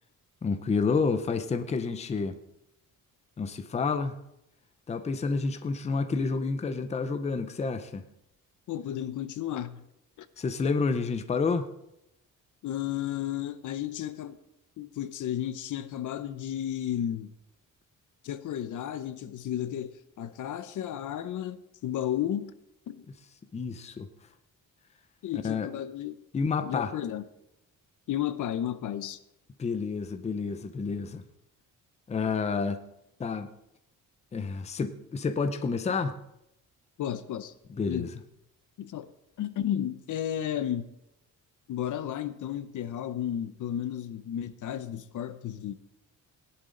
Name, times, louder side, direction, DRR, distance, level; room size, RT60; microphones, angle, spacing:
voice 1, 0.4-2.4 3.4-4.2 4.9-8.0 10.4-11.7 23.5-24.1 25.3-25.7 26.3-26.9 29.6-31.2 32.1-32.8 33.2-33.5 34.3-36.2 37.7-38.1, left 4 dB, 20° left, 9 dB, 0.6 m, -29 dB
voice 2, 8.7-9.8 10.2-10.3 12.6-14.4 14.8-17.3 18.2-22.5 22.9-23.0 25.2-26.2 26.6-27.2 28.1-29.2 37.0-37.5 37.9-38.1 38.8-39.1 39.4-40.9 41.7-45.7, left 10 dB, 65° left, 13 dB, 0.8 m, -33 dB
17.5 x 11.0 x 3.8 m, 0.84 s
cardioid pair, 175°, 33 cm